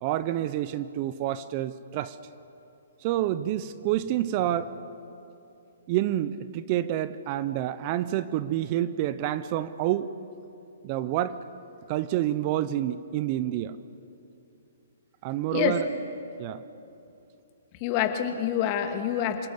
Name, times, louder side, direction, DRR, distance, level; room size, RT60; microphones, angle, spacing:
voice 1, 0.0-2.2 3.0-4.7 5.9-10.1 10.8-11.4 11.9-13.8 15.2-15.9 16.4-16.6, right 12 dB, 40° right, 15 dB, 0.8 m, -28 dB
voice 2, 17.8-19.5, left 10 dB, 35° left, 5 dB, 2.5 m, -26 dB
27.5 x 19.5 x 8.1 m, 2.8 s
hypercardioid pair, 135°, 0 cm